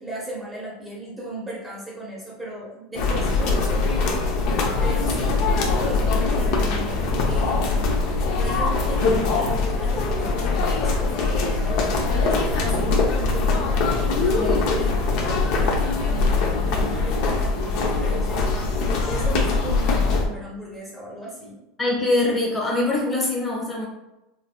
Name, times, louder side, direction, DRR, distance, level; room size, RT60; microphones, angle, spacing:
voice 1, 0.0-4.0 4.8-21.6, right 1 dB, 10° right, -5 dB, 0.8 m, -37 dB
sound 1, 2.9-20.2, left 3 dB, 60° left, 0.6 m, -22 dB
voice 2, 21.8-23.9, left 2 dB, 20° left, -3 dB, 1.1 m, -23 dB
3.9 x 2.6 x 2.2 m, 0.96 s
supercardioid pair, 120°, 0 cm